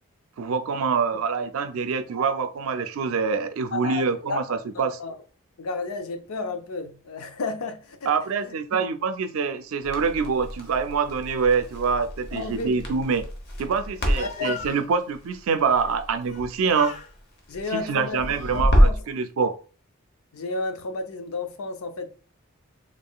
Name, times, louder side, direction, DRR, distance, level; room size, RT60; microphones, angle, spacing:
voice 1, 0.4-5.0 8.1-13.3 13.6-16.9 17.7-19.6, right 5 dB, 80° right, 0.4 m, -25 dB
voice 2, 3.7-4.4 4.7-5.1 5.6-8.1 8.4-8.5 12.3-12.7 14.1-14.6 17.5-19.0 20.3-22.1, left 3 dB, 90° left, 0.5 m, -32 dB
Crackle, 9.8-19.1, equal, 50° left, 0.8 m, -27 dB
Speech, 13.8-14.9 16.2-16.5 16.7-17.1 17.8-18.6, left 6 dB, 35° left, 0.3 m, -39 dB
3.7 x 3.6 x 2.3 m
head